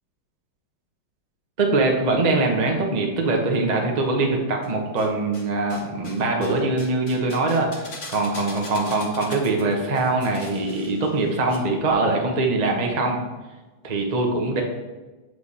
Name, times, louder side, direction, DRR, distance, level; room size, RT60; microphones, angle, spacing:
voice 1, 1.6-13.2 13.8-14.6, right 2 dB, 45° right, 1 dB, 0.5 m, -23 dB
sound 1, 4.6-5.4 5.7-11.6 11.8-11.9, left 2 dB, 40° left, 1.4 m, -41 dB
8.5 x 4.7 x 4.2 m, 1.2 s
omnidirectional pair, 2.3 m